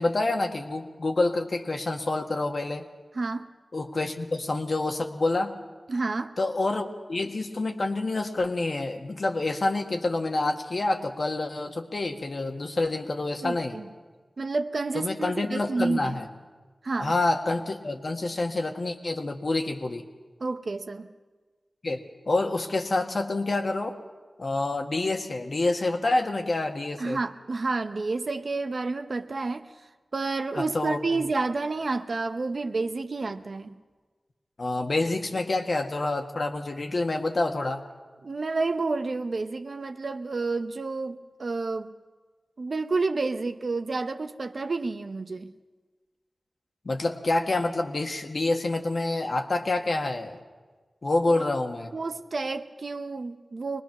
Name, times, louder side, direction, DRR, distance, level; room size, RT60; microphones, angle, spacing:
voice 1, 0.0-2.9 3.7-5.5 6.4-13.8 14.9-16.3 17.0-20.1 21.8-24.0 24.4-27.2 30.5-31.0 34.6-37.8 46.9-50.4 51.0-51.9, left 2 dB, 60° left, 3 dB, 1.7 m, -27 dB
voice 2, 3.1-3.5 5.9-6.3 13.4-13.9 14.4-16.2 16.8-17.1 20.4-21.1 27.0-29.7 30.1-33.7 38.2-41.9 42.6-45.5 51.3-51.4 51.9-53.8, right 3 dB, 65° right, 8 dB, 0.8 m, -30 dB
22.5 x 20.0 x 6.0 m, 1.4 s
cardioid pair, 45°, 0 cm